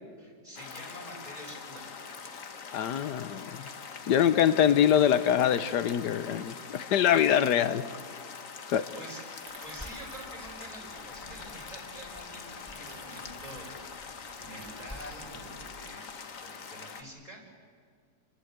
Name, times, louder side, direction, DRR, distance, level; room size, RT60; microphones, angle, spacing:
voice 1, 0.2-1.9 8.9-9.2 9.6-13.7 14.4-15.3 15.7-17.4, right 1 dB, 25° right, -1 dB, 6.0 m, -47 dB
sound 1, 0.5-17.0, left 5 dB, 55° left, 1.6 m, -44 dB
voice 2, 2.7-3.7 4.0-7.8 8.7-8.9, left 9 dB, 85° left, 13 dB, 1.5 m, -24 dB
sound 2, 9.4-12.0 12.5-15.8, right 2 dB, 80° right, 4.0 m, -51 dB
sound 3, 9.7-15.0, left 1 dB, 5° right, 4.0 m, -52 dB
29.5 x 20.5 x 8.1 m, 2.2 s
omnidirectional pair, 1.8 m